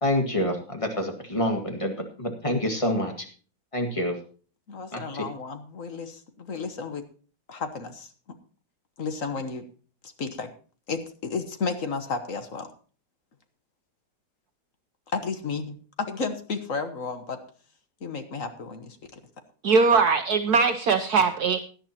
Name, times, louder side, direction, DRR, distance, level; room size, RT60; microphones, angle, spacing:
voice 1, 0.0-3.3 3.7-4.2 4.9-5.2, left 1 dB, 15° left, 3 dB, 1.8 m, -27 dB
voice 2, 4.7-7.0 7.5-8.1 9.0-9.7 10.0-10.5 10.9-12.7 15.1-17.4 18.0-19.2, left 4 dB, 45° left, 8 dB, 1.5 m, -32 dB
voice 3, 19.6-21.6, right 4 dB, 65° right, 7 dB, 1.1 m, -21 dB
17.5 x 11.0 x 2.9 m, 0.40 s
omnidirectional pair, 2.1 m